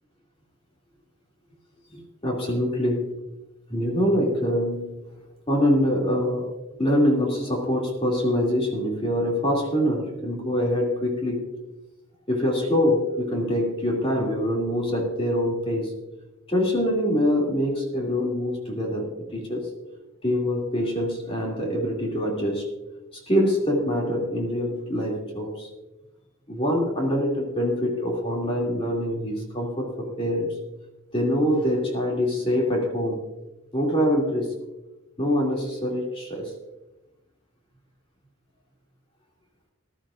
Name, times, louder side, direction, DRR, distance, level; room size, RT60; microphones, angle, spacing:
voice 1, 1.9-3.1 3.7-4.9 5.5-6.5 6.8-11.5 12.3-15.9 16.5-19.7 20.2-22.7 23.3-25.7 26.5-30.6 31.1-33.3 33.7-34.6 35.2-36.5, equal, 25° left, -1 dB, 2.5 m, -24 dB
20.0 x 12.5 x 2.5 m, 1.0 s
head